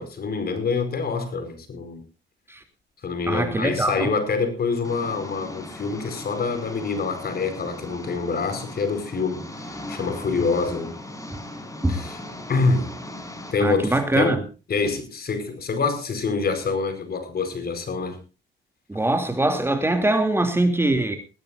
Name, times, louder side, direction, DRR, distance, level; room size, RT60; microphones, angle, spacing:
voice 1, 0.0-2.0 3.0-10.9 11.9-12.2 12.5-13.0 13.5-18.2, left 4 dB, 50° left, 4.8 m, -26 dB
voice 2, 3.3-4.1 11.8-12.0 13.6-14.4 18.9-21.2, right 2 dB, 10° right, 2.9 m, -22 dB
Engine, 4.8-13.5, left 1 dB, 15° left, 5.4 m, -38 dB
20.5 x 16.5 x 2.6 m
cardioid pair, 90°, 20 cm